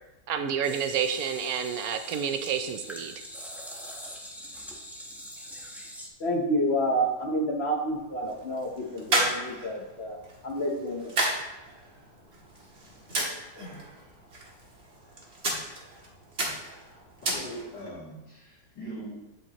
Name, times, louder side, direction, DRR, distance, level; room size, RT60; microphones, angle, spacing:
voice 1, 0.3-3.1, right 7 dB, 70° right, 8 dB, 0.9 m, -29 dB
sound 1, 0.6-6.1, equal, ahead, 0.4 m, -43 dB
voice 2, 6.2-10.2 10.4-11.2, equal, 45° left, 1 dB, 0.9 m, -29 dB
sound 2, 7.9-17.9, right 1 dB, 40° right, 1.6 m, -34 dB
voice 3, 16.8-19.1, right 1 dB, 75° left, -13 dB, 3.4 m, -41 dB
11.5 x 5.1 x 2.9 m, 1.0 s
omnidirectional pair, 1.9 m